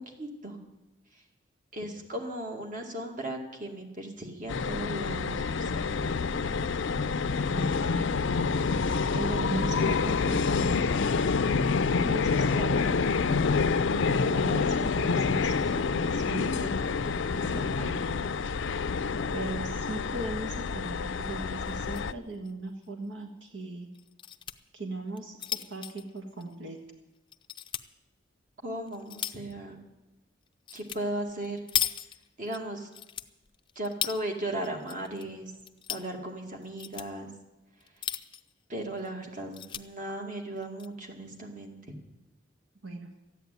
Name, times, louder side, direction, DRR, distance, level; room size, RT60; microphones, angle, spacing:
voice 1, 0.2-0.6 1.7-5.9 28.6-29.8 30.7-31.6 32.4-32.9 33.8-35.5 35.9-37.3 38.7-41.7, right 1 dB, 45° right, 3 dB, 2.2 m, -36 dB
sound 1, 4.5-22.1, left 4 dB, 75° left, 0.5 m, -27 dB
voice 2, 7.5-8.1 9.1-10.9 12.0-13.1 14.0-18.0 19.3-23.9 24.7-25.4 25.7-26.8 42.8-43.1, right 2 dB, 75° right, 3 dB, 1.6 m, -38 dB
sound 2, 21.7-22.1 22.4-22.5 22.8-22.9 23.9-24.6 25.1-26.9 27.3-27.9 28.5-29.5 30.7-31.0 31.3-32.6 32.9-34.2 34.6-35.2 35.5-36.1 36.6-37.1 37.8-38.5 39.0-39.1 39.3-39.8 40.6-40.9, left 10 dB, 25° left, 0.5 m, -36 dB
14.0 x 9.3 x 9.2 m, 1.0 s
head